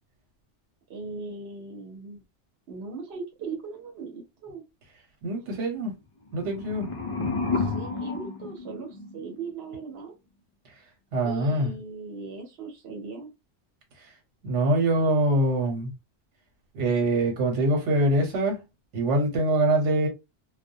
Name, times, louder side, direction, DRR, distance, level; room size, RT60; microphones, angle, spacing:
voice 1, 0.9-2.2 2.7-4.6 7.5-10.1 11.2-13.3, right 4 dB, 65° right, 1.0 m, -39 dB
voice 2, 5.2-5.9 6.3-6.9 11.1-11.8 14.4-15.9 16.7-18.6 18.9-20.1, right 1 dB, 85° right, 1.2 m, -24 dB
sound 1, 6.3-9.4, left 4 dB, 55° left, 0.3 m, -31 dB
2.3 x 2.1 x 2.6 m
omnidirectional pair, 1.2 m